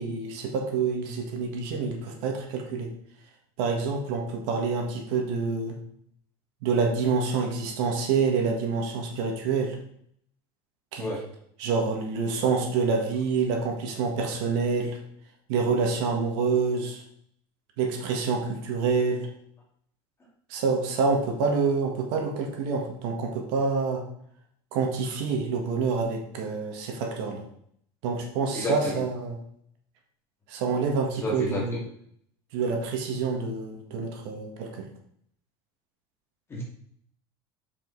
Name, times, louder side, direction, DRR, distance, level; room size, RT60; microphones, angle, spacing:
voice 1, 0.0-2.9 3.6-5.8 6.6-9.8 10.9-11.0 11.6-15.0 15.5-17.0 17.8-19.3 20.5-24.0 24.7-27.4 28.0-29.4 30.5-31.8 32.5-34.8, right 4 dB, 75° right, 2 dB, 1.8 m, -27 dB
voice 2, 28.5-29.0 31.2-31.6 36.5-36.6, left 1 dB, 20° left, -3 dB, 2.5 m, -31 dB
7.3 x 5.4 x 4.1 m, 0.67 s
cardioid pair, 155°, 14 cm